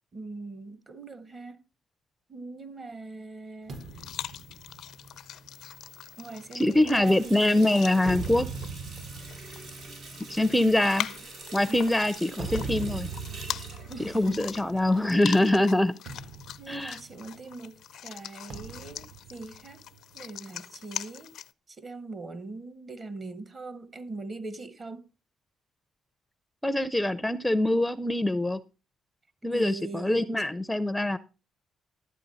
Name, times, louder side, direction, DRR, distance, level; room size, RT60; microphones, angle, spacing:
voice 1, 0.1-1.6 2.3-3.8 6.2-7.8 10.4-11.2 11.7-11.8 13.9-14.5 15.0-15.1 16.6-19.8 20.1-21.4 21.7-25.0 29.5-30.5, right 3 dB, 35° right, 1.1 m, -41 dB
sound 1, 3.7-21.5, left 11 dB, 75° left, 0.4 m, -42 dB
sound 2, 3.7-7.3 7.8-15.2 15.5-15.7 16.1-17.7 18.5-20.2, right 4 dB, 60° right, 1.4 m, -41 dB
voice 2, 6.5-8.5 10.3-11.1 11.5-13.1 14.0-15.9 16.7-17.0 26.6-28.6 29.4-31.2, left 1 dB, 5° left, 0.5 m, -24 dB
Water tap faucet, 6.7-15.2, right 3 dB, 85° right, 5.0 m, -46 dB
12.0 x 8.4 x 4.1 m
cardioid pair, 90°, 0 cm